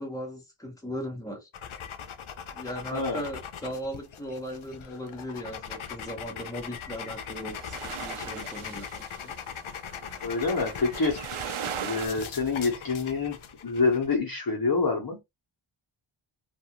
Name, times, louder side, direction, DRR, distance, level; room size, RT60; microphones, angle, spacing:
voice 1, 0.0-1.5 2.5-9.4, equal, 5° left, 1.2 m, -38 dB
sound 1, 1.5-14.2, left 7 dB, 75° left, 0.6 m, -40 dB
voice 2, 2.9-3.2 10.2-11.2 11.8-15.2, left 4 dB, 45° left, 1.0 m, -27 dB
sound 2, 7.0-12.1, right 8 dB, 75° right, 0.6 m, -38 dB
2.6 x 2.4 x 2.9 m
wide cardioid pair, 65°, 50 cm